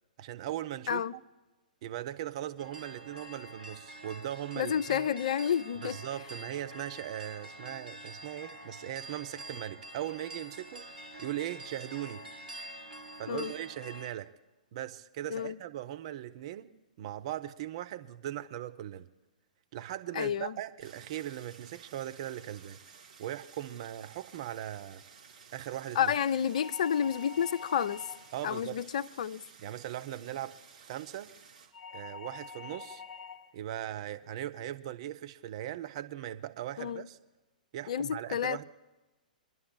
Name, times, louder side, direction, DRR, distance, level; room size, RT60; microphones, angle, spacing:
voice 1, 0.2-1.2 1.8-5.0 5.8-12.2 13.2-14.3 14.7-16.7 17.0-19.1 19.7-22.8 23.2-25.0 25.5-26.1 28.3-28.8 29.6-31.3 31.9-33.0 33.5-37.2 37.7-38.6, right 12 dB, 40° right, 0.6 m, -39 dB
sound 1, 2.6-14.1, right 1 dB, 80° right, 1.4 m, -47 dB
voice 2, 4.6-6.0 13.3-13.5 15.3-15.6 20.1-20.5 26.0-28.0 28.4-29.4 36.8-37.1 37.9-38.6, left 8 dB, 50° left, 0.4 m, -30 dB
Stream, 20.8-31.7, right 6 dB, 60° right, 3.9 m, -55 dB
sound 2, 26.5-28.5 31.7-33.5, left 5 dB, 10° left, 1.2 m, -46 dB
29.0 x 11.0 x 2.3 m
figure-of-eight pair, 115°, 5 cm